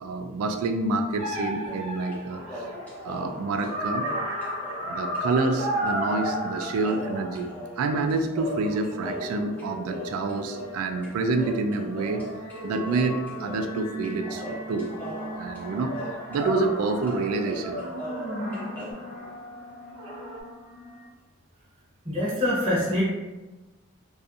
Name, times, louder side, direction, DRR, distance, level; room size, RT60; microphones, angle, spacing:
voice 1, 0.0-2.7 3.0-4.1 4.8-7.5 7.8-12.3 12.6-14.9 15.3-15.9 16.3-17.8, right 3 dB, 85° right, 6 dB, 0.3 m, -28 dB
sound 1, 1.2-8.0 8.3-11.6 12.5-13.8 14.2-19.3 19.9-20.4, equal, 60° right, 0.9 m, -35 dB
sound 2, 1.7-2.2 2.5-4.9 5.1-5.2 5.5-11.1 11.4-12.6 12.8-14.1 14.4-16.8 17.1-17.2 17.4-18.9, equal, 10° left, 0.6 m, -39 dB
sound 3, 5.6-21.1, right 1 dB, 75° left, 0.6 m, -41 dB
voice 2, 22.0-23.0, left 1 dB, 25° right, -9 dB, 0.8 m, -24 dB
2.6 x 2.3 x 2.4 m, 1.1 s
head